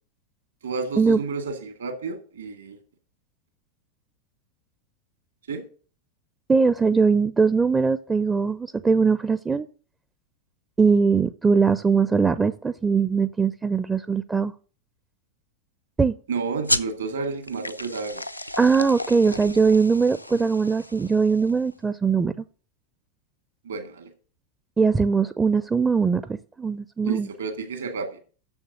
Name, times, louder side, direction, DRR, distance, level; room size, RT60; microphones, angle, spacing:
voice 1, 0.6-2.8 5.5-5.6 16.3-18.2 23.6-24.1 27.0-28.2, right 4 dB, 70° right, 6 dB, 2.0 m, -31 dB
voice 2, 6.5-9.7 10.8-14.5 16.0-16.2 18.6-22.3 24.8-27.3, right 5 dB, 15° right, 14 dB, 0.4 m, -21 dB
sound 1, 16.6-21.7, left 1 dB, 90° left, 0.5 m, -32 dB
7.1 x 7.0 x 7.7 m, 0.40 s
figure-of-eight pair, 90°, 0 cm